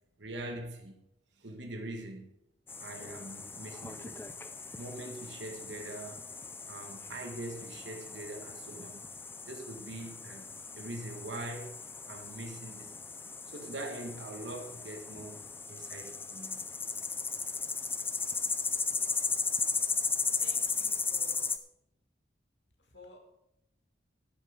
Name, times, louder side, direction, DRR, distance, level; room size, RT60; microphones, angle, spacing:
voice 1, 0.2-0.9 1.4-2.3 2.8-4.3 4.7-6.2 6.7-9.0 9.5-11.8 12.0-16.6, right 1 dB, 70° right, 1.7 m, -43 dB
sound 1, 2.7-21.6, left 4 dB, 10° left, 0.4 m, -36 dB
voice 2, 18.7-19.3 20.4-21.5 22.8-23.2, left 2 dB, 70° left, 2.7 m, -55 dB
11.0 x 9.1 x 5.1 m
head